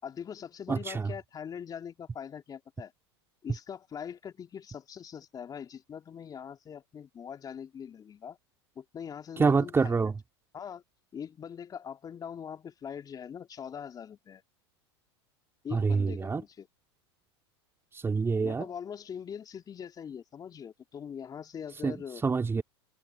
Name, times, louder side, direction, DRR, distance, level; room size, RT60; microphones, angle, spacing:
voice 1, 0.0-2.9 3.4-8.4 8.8-10.1 10.5-10.8 11.1-14.4 15.6-16.7 18.4-22.2, left 7 dB, 25° left, 3.7 m, -42 dB
voice 2, 0.7-1.1 9.4-10.2 15.7-16.4 17.9-18.7 21.8-22.6, right 4 dB, 15° right, 3.2 m, -27 dB
hypercardioid pair, 105°, 14 cm